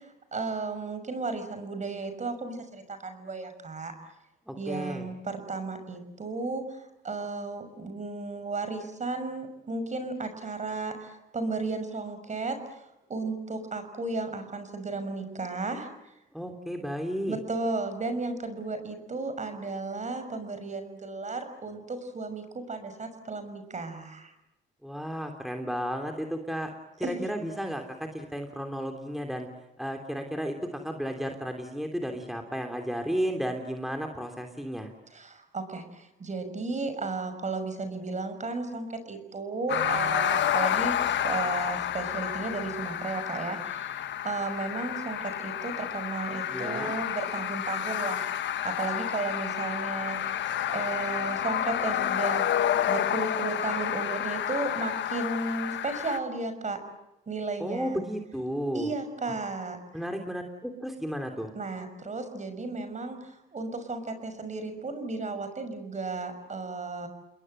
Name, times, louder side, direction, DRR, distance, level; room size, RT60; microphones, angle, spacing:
voice 1, 0.0-3.9 4.6-12.8 13.1-15.9 17.3-24.3 27.0-27.4 35.1-40.9 41.2-50.4 50.7-52.5 52.8-56.8 57.3-58.0 58.7-59.8 61.6-67.1, right 3 dB, 35° right, 9 dB, 6.1 m, -34 dB
voice 2, 4.5-5.1 16.3-17.4 24.8-26.7 27.0-29.5 29.8-34.9 46.5-46.9 57.6-58.9 59.9-61.5, equal, ahead, 4 dB, 3.2 m, -33 dB
sound 1, 39.7-56.2, left 10 dB, 65° left, 1.3 m, -30 dB
29.5 x 21.0 x 8.0 m, 0.91 s
cardioid pair, 90°, 20 cm